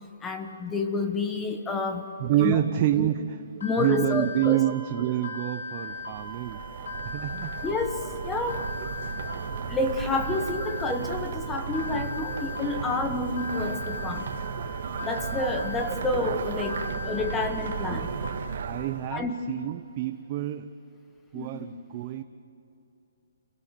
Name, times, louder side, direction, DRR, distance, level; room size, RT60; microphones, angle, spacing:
voice 1, 0.2-2.1 2.4-2.6 3.0-3.1 3.6-4.6 7.6-8.6 9.7-14.4 15.0-18.1 19.1-19.4 21.3-21.6, left 3 dB, 10° left, 6 dB, 1.2 m, -29 dB
voice 2, 2.2-6.6 7.0-7.6 8.8-8.9 10.6-10.7 15.9-16.1 17.9-18.0 18.6-20.7 21.3-22.2, right 13 dB, 25° right, 7 dB, 0.6 m, -28 dB
sound 1, 3.6-18.2, left 3 dB, 65° left, 6.8 m, -39 dB
sound 2, 5.7-19.2, right 6 dB, 50° right, 1.6 m, -35 dB
29.0 x 18.0 x 8.1 m, 2.8 s
hypercardioid pair, 175°, 0 cm